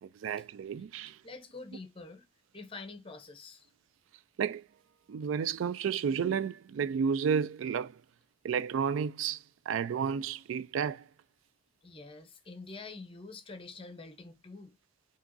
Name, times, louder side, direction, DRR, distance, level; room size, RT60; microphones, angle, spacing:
voice 1, 0.0-1.2 4.4-4.6 5.1-8.0 8.4-11.1, right 7 dB, 70° right, 0.3 m, -32 dB
voice 2, 1.2-2.2 2.5-3.7 11.8-14.8, left 3 dB, 25° left, 0.7 m, -46 dB
5.8 x 2.9 x 2.6 m
head